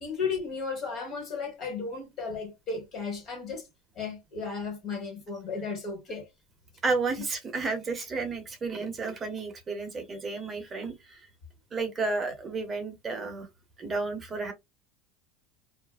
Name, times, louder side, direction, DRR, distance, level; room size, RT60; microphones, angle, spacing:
voice 1, 0.0-3.7 3.9-6.3, left 4 dB, 40° left, 1.4 m, -34 dB
voice 2, 6.8-11.2 11.7-13.5 13.8-14.5, right 3 dB, 25° right, 0.7 m, -32 dB
2.7 x 2.4 x 2.3 m
supercardioid pair, 130°, 0 cm